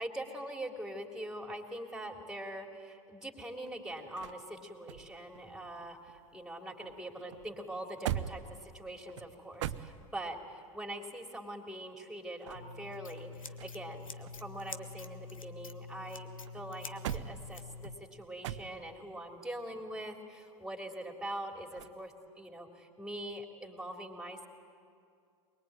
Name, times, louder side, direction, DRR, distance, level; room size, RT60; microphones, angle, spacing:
voice 1, 0.0-16.3 16.5-24.5, right 1 dB, 5° right, 3 dB, 3.4 m, -43 dB
sound 1, 3.4-6.5 6.8-10.4 12.2-14.0 14.3-16.0 16.5-19.1 21.7-22.0, right 11 dB, 60° right, 0.9 m, -43 dB
Scissors, 12.5-17.9, left 4 dB, 80° left, 1.3 m, -46 dB
23.0 x 23.0 x 9.1 m, 2.3 s
figure-of-eight pair, 80°, 17 cm